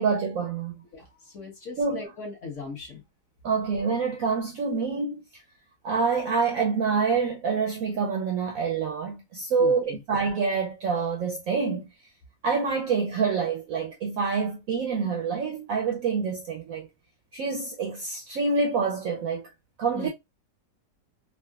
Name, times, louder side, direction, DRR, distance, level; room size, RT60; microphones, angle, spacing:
voice 1, 0.0-0.8 1.8-2.0 3.4-5.4 5.8-11.9 12.4-16.9 17.3-19.5 19.8-20.1, right 5 dB, 70° right, 0.8 m, -27 dB
voice 2, 0.9-3.0 9.6-10.0 19.9-20.1, left 3 dB, 50° left, 1.1 m, -39 dB
3.6 x 2.1 x 2.3 m
omnidirectional pair, 1.9 m